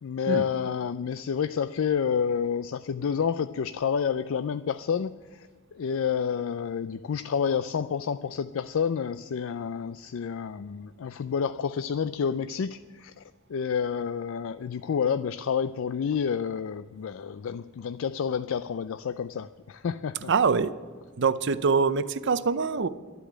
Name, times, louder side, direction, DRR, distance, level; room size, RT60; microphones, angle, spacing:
voice 1, 0.0-13.2 13.5-20.3, left 7 dB, 65° left, 12 dB, 0.4 m, -29 dB
voice 2, 20.3-20.7 21.2-22.9, right 5 dB, 55° right, 14 dB, 0.6 m, -24 dB
12.5 x 8.2 x 8.8 m, 1.5 s
head